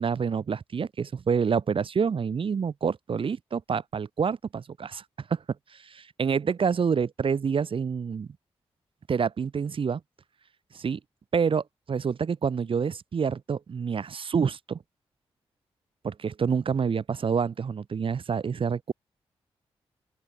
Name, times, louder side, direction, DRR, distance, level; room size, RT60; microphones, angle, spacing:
voice 1, 0.0-5.0 5.3-5.4 5.7-8.3 9.1-10.0 10.7-11.0 11.3-14.8 16.0-18.9, right 6 dB, 50° right, 0.7 m, -27 dB
open air
supercardioid pair, 40°, 11 cm